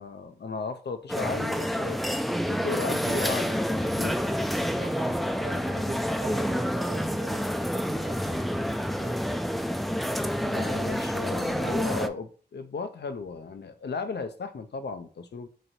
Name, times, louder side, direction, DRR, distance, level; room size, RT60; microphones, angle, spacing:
voice 1, 0.0-2.0 2.5-4.2 10.4-15.5, left 4 dB, 80° left, 0.5 m, -35 dB
sound 1, 1.1-12.1, equal, ahead, 0.3 m, -28 dB
voice 2, 4.6-9.2, right 3 dB, 90° right, 0.9 m, -42 dB
3.1 x 2.7 x 4.2 m
cardioid pair, 40°, 18 cm